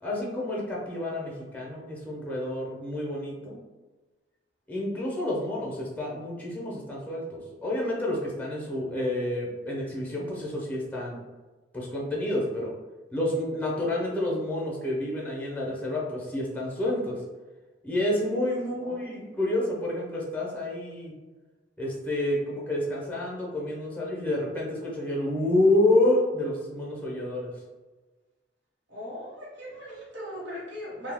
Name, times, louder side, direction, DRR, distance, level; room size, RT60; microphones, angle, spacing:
voice 1, 0.0-3.6 4.7-11.2 11.7-12.7 13.1-17.2 17.8-21.1 21.8-27.5, left 1 dB, 10° left, -3 dB, 0.5 m, -29 dB
voice 2, 18.6-19.3 28.9-31.1, equal, 75° right, -7 dB, 0.9 m, -39 dB
2.8 x 2.1 x 3.3 m, 1.2 s
head